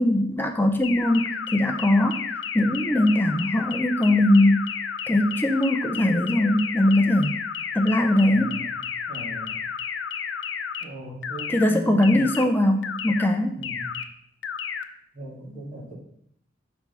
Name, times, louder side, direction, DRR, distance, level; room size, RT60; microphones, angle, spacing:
voice 1, 0.0-2.2 2.5-4.7 5.1-7.4 7.7-8.6 11.5-13.6, left 1 dB, 10° left, 5 dB, 0.6 m, -21 dB
sound 1, 0.8-10.8 11.2-11.6 12.0-12.4 12.8-13.2 13.6-14.0 14.4-14.8, left 7 dB, 80° left, 0.6 m, -31 dB
voice 2, 8.3-8.7 9.1-9.6 10.8-12.3 13.5-13.9 15.1-15.9, right 1 dB, 40° right, -6 dB, 2.8 m, -37 dB
6.0 x 4.4 x 5.4 m, 0.69 s
head